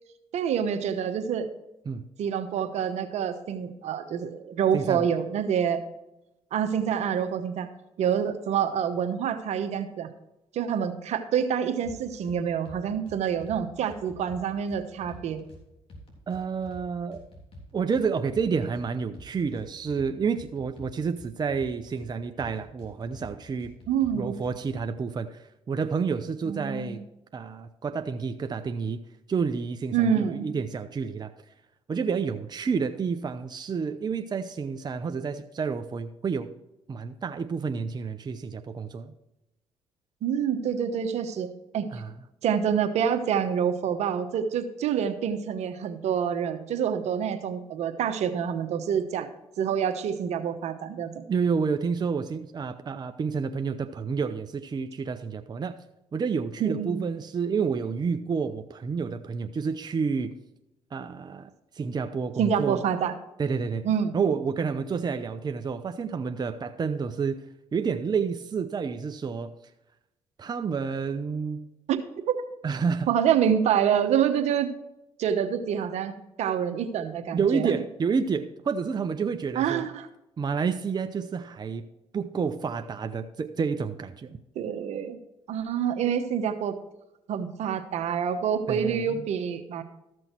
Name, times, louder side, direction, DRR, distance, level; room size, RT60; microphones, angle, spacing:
voice 1, 0.3-1.5 2.2-5.8 6.5-7.7 8.0-10.1 10.5-15.4 23.9-24.3 26.4-26.9 29.9-30.5 40.2-41.5 41.7-41.9 42.4-49.3 49.6-51.2 56.6-57.0 62.4-63.1 63.8-64.1 71.9-72.0 72.3-72.4 73.1-74.7 75.2-76.1 76.4-77.7 79.5-80.1 84.5-85.2 85.5-86.8 87.3-89.8, right 8 dB, 70° right, 9 dB, 1.0 m, -27 dB
voice 2, 4.7-5.1 16.3-17.2 17.7-23.7 24.1-27.0 27.3-29.0 29.3-31.3 31.9-36.5 36.9-39.1 41.9-42.1 51.3-55.8 56.1-60.4 60.9-62.8 63.4-63.9 64.1-67.4 67.7-69.5 70.4-71.7 72.6-73.1 77.3-79.9 80.4-81.9 82.1-84.4 88.7-89.3, right 5 dB, 35° right, 8 dB, 0.7 m, -29 dB
sound 1, 11.8-12.4 12.7-13.6 13.9-15.6 15.9-16.8 17.1-18.8 19.1-20.1 20.4-22.1 22.4-23.3 23.6-24.8, left 1 dB, 55° left, 3.5 m, -47 dB
13.5 x 6.3 x 4.5 m, 0.92 s
supercardioid pair, 70°, 12 cm